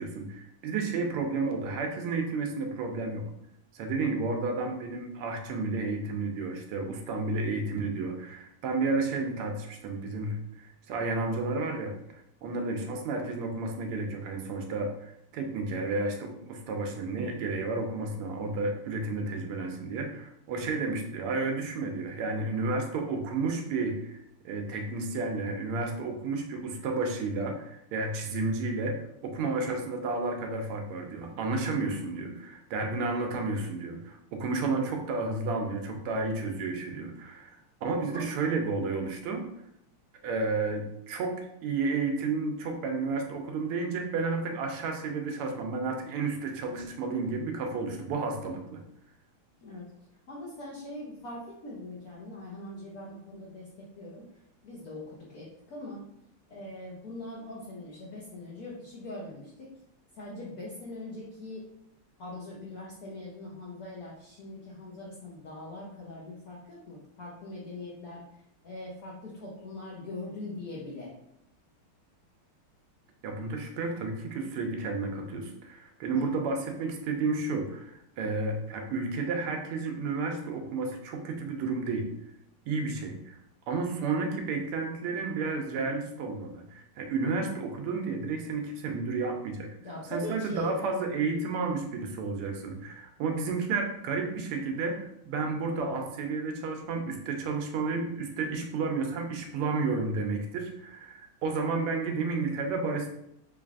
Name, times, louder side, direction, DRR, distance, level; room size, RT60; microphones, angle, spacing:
voice 1, 0.0-3.2 3.7-11.9 12.4-24.2 24.4-39.5 40.2-48.8 73.2-82.1 82.7-83.4 83.7-89.7 90.1-103.1, right 3 dB, 85° right, 3 dB, 1.5 m, -31 dB
voice 2, 50.3-54.3 54.6-56.0 56.5-59.7 60.1-61.7 62.2-68.2 68.6-71.1 76.1-76.3 89.8-90.9, left 2 dB, 70° left, -6 dB, 0.8 m, -42 dB
3.9 x 3.3 x 2.4 m, 0.77 s
omnidirectional pair, 2.4 m